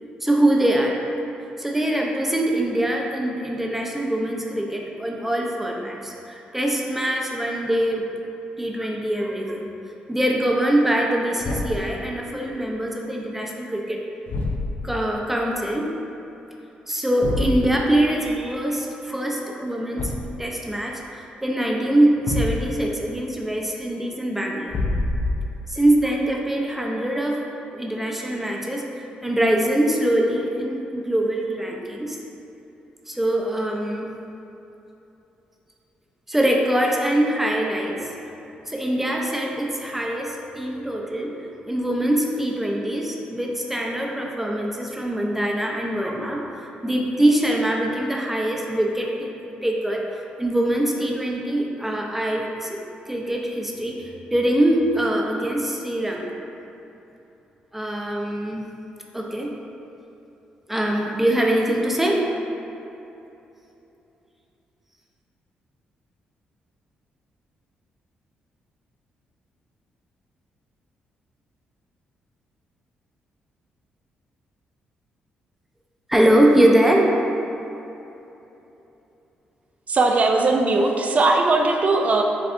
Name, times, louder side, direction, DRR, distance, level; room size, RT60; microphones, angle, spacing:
voice 1, 0.2-1.0 1.6-8.1 8.6-9.7 10.1-14.0 14.8-16.0 16.9-20.1 20.4-24.8 25.7-32.2 33.1-34.1 36.3-38.1 38.7-41.4 41.7-46.5 46.8-49.3 49.6-50.0 50.4-52.8 53.1-56.3 57.7-58.7 59.1-59.6 60.7-62.2 76.1-77.1, right 1 dB, 5° right, -1 dB, 0.7 m, -23 dB
Thump thud, 11.4-11.9 14.3-15.0 17.2-17.7 20.0-20.4 22.3-22.9 24.7-25.7, left 2 dB, 55° left, 0.5 m, -26 dB
voice 2, 79.9-82.2, right 3 dB, 45° right, 3 dB, 0.5 m, -19 dB
7.6 x 2.5 x 2.5 m, 2.9 s
supercardioid pair, 65°, 3 cm